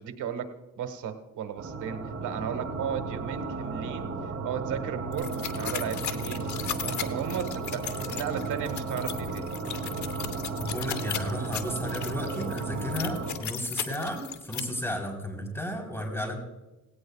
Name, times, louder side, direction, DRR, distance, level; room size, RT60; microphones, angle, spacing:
voice 1, 0.0-4.1 4.4-6.5 6.8-9.5, right 8 dB, 80° right, 7 dB, 1.6 m, -35 dB
sound 1, 1.6-13.3, right 4 dB, 55° right, 3.7 m, -34 dB
sound 2, 5.1-14.6, left 10 dB, 70° left, 1.1 m, -37 dB
voice 2, 10.6-16.4, equal, 10° left, 2 dB, 3.9 m, -33 dB
17.5 x 17.5 x 2.4 m, 1.0 s
cardioid pair, 90°, 30 cm